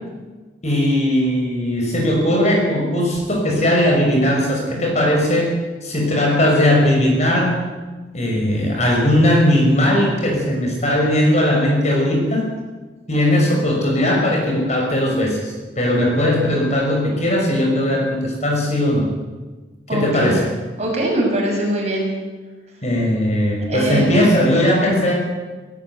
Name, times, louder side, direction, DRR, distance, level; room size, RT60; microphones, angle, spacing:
voice 1, 0.6-5.5 5.8-7.7 8.1-12.5 13.1-19.1 19.9-20.4 22.8-25.1, left 1 dB, 35° left, 0 dB, 6.0 m, -18 dB
voice 2, 19.9-20.4 20.8-22.1 23.7-24.2, right 1 dB, 35° right, -1 dB, 6.6 m, -22 dB
18.0 x 17.5 x 9.6 m, 1.3 s
head